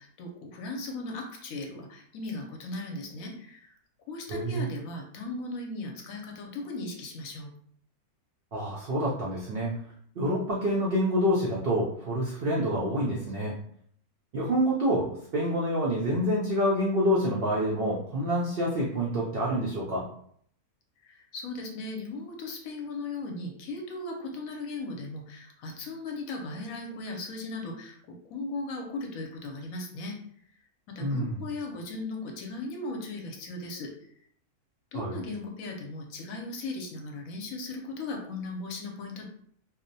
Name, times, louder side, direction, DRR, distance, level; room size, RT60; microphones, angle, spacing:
voice 1, 0.0-3.7 4.1-7.5 21.0-30.2 31.0-33.9 34.9-39.3, left 2 dB, 70° left, 1 dB, 0.9 m, -37 dB
voice 2, 4.3-4.7 8.5-9.8 10.2-13.5 14.3-20.1 31.0-31.3 34.9-35.2, equal, 85° right, -5 dB, 0.5 m, -27 dB
2.7 x 2.0 x 2.6 m, 0.63 s
omnidirectional pair, 1.6 m